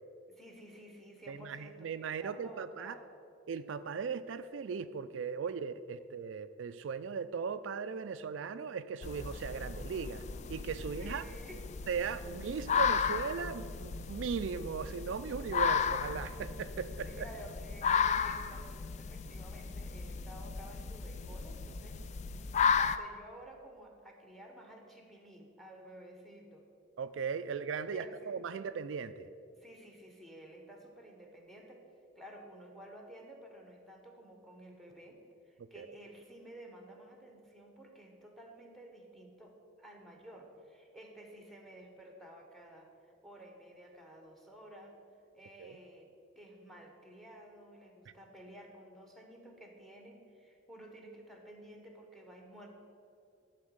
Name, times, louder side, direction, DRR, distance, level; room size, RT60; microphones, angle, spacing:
voice 1, 0.3-3.1 10.8-11.6 12.2-12.3 17.0-22.0 22.8-26.6 27.5-27.6 27.9-28.4 29.5-31.8 32.2-45.0 45.3-52.7, right 1 dB, ahead, 2 dB, 1.2 m, -53 dB
voice 2, 1.3-3.0 3.5-10.2 10.5-11.2 11.9-17.3 27.0-29.3 35.6-36.0 45.6-45.8, right 6 dB, 75° right, 11 dB, 0.4 m, -38 dB
sound 1, 9.0-23.0, left 6 dB, 35° left, 0.3 m, -34 dB
12.5 x 4.1 x 7.9 m, 2.5 s
head